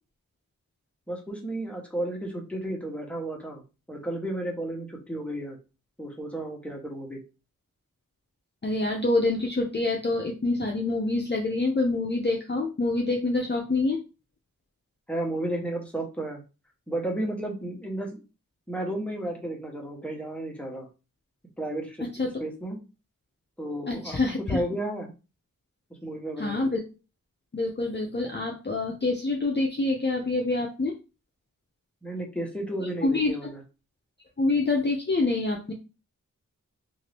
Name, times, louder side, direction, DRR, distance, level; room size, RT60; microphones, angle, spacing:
voice 1, 1.1-3.6 3.9-5.6 6.0-7.2 15.1-16.4 16.9-18.2 18.7-20.9 21.6-22.1 22.4-22.8 23.6-24.2 24.5-25.1 26.0-26.7 32.0-33.6, right 1 dB, 5° left, 0 dB, 1.0 m, -33 dB
voice 2, 8.6-14.0 22.0-22.4 23.9-24.6 26.4-26.8 27.5-30.9 32.8-33.3 34.4-35.7, left 2 dB, 35° left, 1 dB, 0.5 m, -26 dB
2.7 x 2.5 x 3.3 m, 0.30 s
wide cardioid pair, 50°, 33 cm